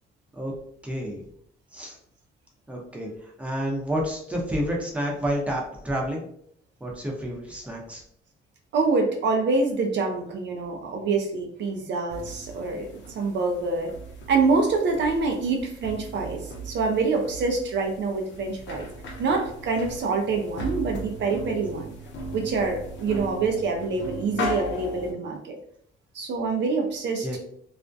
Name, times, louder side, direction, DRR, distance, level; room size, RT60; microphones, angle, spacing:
voice 1, 0.8-1.2 1.7-1.9 2.7-3.1 3.4-6.2 6.8-8.0 27.2-27.4, equal, 5° right, -2 dB, 0.7 m, -29 dB
voice 2, 8.7-13.9 14.3-18.9 19.2-21.9 22.3-25.6 26.1-27.4, right 4 dB, 65° right, 2 dB, 0.5 m, -26 dB
sound 1, 12.1-25.1, equal, 65° left, 0.7 m, -37 dB
2.4 x 2.1 x 2.5 m, 0.68 s
cardioid pair, 90°, 20 cm